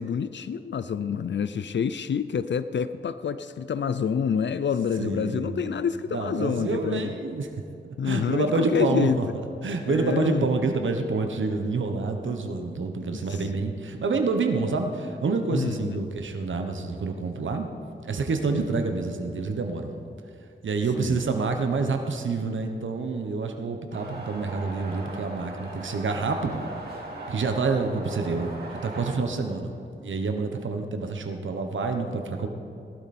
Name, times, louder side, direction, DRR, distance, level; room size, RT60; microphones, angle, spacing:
voice 1, 0.0-7.2 8.0-9.2 9.9-10.5 12.2-12.4 13.0-13.4 15.5-16.0 18.5-18.6 21.0-21.2, left 7 dB, 70° left, 13 dB, 0.5 m, -27 dB
voice 2, 5.0-5.7 6.1-7.5 7.8-9.1 9.6-17.7 18.0-19.9 20.6-26.6 27.3-32.5, right 4 dB, 85° right, 5 dB, 1.1 m, -28 dB
sound 1, 23.9-29.1, right 2 dB, 55° right, 3.0 m, -39 dB
19.0 x 12.0 x 4.3 m, 2.6 s
cardioid pair, 65°, 19 cm